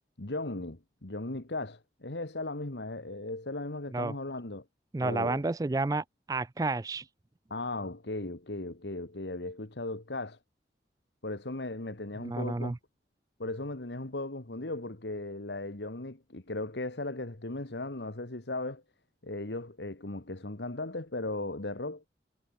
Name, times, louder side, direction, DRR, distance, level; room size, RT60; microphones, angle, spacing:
voice 1, 0.2-4.7 5.0-5.4 7.5-10.4 11.2-12.7 13.4-18.8 19.2-22.1, left 2 dB, 80° left, 1.8 m, -37 dB
voice 2, 4.9-7.0 12.2-12.8, right 3 dB, 20° right, 0.3 m, -31 dB
head